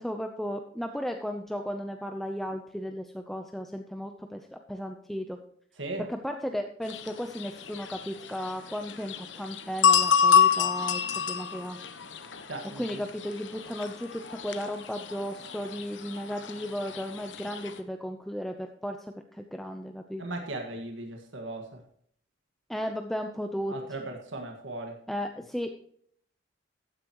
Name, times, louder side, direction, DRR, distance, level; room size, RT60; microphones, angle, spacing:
voice 1, 0.0-5.4 6.1-11.8 12.8-20.2 22.7-23.7 25.1-25.7, equal, ahead, 4 dB, 0.7 m, -35 dB
sound 1, 6.9-17.8, left 7 dB, 75° left, 1.1 m, -28 dB
voice 2, 12.5-13.0 20.2-21.8 23.7-25.0, right 2 dB, 90° right, 3 dB, 1.8 m, -37 dB
15.0 x 10.0 x 3.0 m, 0.63 s
head